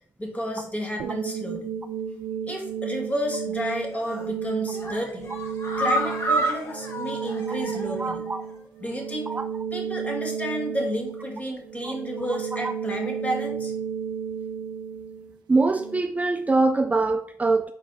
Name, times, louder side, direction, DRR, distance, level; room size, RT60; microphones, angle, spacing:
voice 1, 0.2-1.7 2.4-5.4 5.6-8.2 8.8-9.3 9.7-13.7, equal, 20° left, 2.0 m, -31 dB
sound 1, 1.0-16.0, right 7 dB, 85° right, 0.4 m, -33 dB
sound 2, 3.9-4.3 4.7-8.1 8.4-8.5 8.9-9.0, right 1 dB, 35° left, 1.9 m, -29 dB
voice 2, 8.0-8.4 9.3-9.5 11.8-11.9 12.6-12.7 15.5-17.7, right 3 dB, 20° right, 0.3 m, -23 dB
5.3 x 4.4 x 4.1 m
cardioid pair, 70°, 7 cm